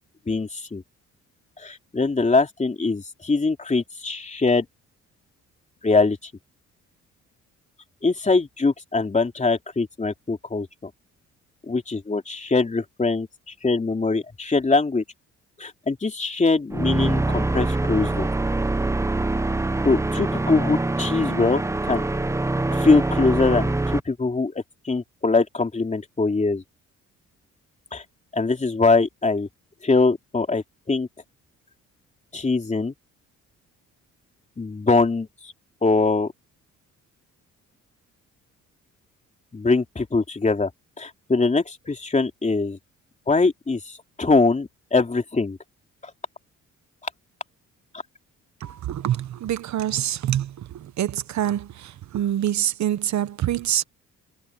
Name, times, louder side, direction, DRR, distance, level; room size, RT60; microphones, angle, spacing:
voice 1, 0.3-0.8 1.6-4.7 5.8-6.3 8.0-10.9 11.7-13.3 13.6-15.0 15.6-18.3 19.8-22.0 22.7-26.6 27.9-28.0 28.3-29.5 29.8-31.1 32.3-32.9 34.6-35.5 35.8-36.3 39.5-40.7 41.0-42.8 43.3-45.6 46.0-46.1, left 3 dB, 25° left, 3.3 m, -22 dB
sound 1, 16.7-24.0, right 2 dB, 10° right, 0.7 m, -24 dB
voice 2, 48.6-53.8, right 11 dB, 70° right, 1.3 m, -26 dB
cardioid pair, 90°, 30 cm